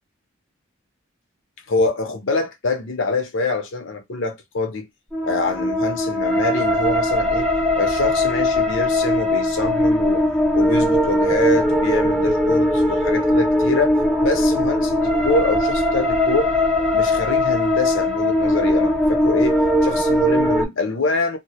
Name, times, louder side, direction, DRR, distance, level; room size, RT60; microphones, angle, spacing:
voice 1, 1.7-4.9 5.2-7.5 7.8-10.2 10.5-16.5 16.9-21.4, left 3 dB, 65° left, 0.6 m, -25 dB
sound 1, 5.1-20.6, left 1 dB, ahead, 0.3 m, -19 dB
2.1 x 2.1 x 2.8 m
head